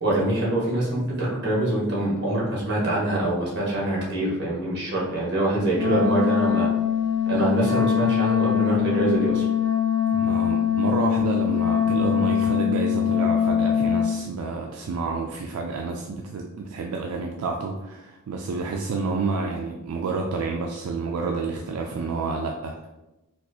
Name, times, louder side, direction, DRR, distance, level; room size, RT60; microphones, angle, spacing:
voice 1, 0.0-6.7 7.3-9.4, right 1 dB, 50° right, -5 dB, 1.4 m, -24 dB
Wind instrument woodwind instrument, 5.7-14.1, left 9 dB, 35° right, 1.2 m, -22 dB
voice 2, 10.0-22.9, right 4 dB, 80° right, 1 dB, 0.4 m, -29 dB
4.2 x 2.4 x 2.7 m, 1.0 s
head